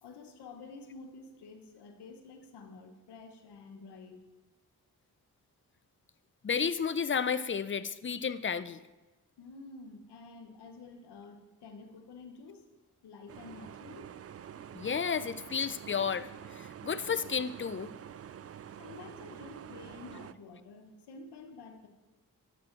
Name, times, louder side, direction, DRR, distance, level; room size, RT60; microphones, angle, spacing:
voice 1, 0.0-4.2 9.4-12.6 13.0-14.1 18.8-21.9, left 4 dB, 85° left, 6 dB, 1.1 m, -50 dB
voice 2, 6.4-8.8 14.7-17.9, left 6 dB, 30° left, 14 dB, 0.6 m, -32 dB
sound 1, 13.3-20.3, right 9 dB, 40° right, 0.4 m, -47 dB
12.0 x 7.6 x 3.8 m, 1.2 s
supercardioid pair, 40°, 39 cm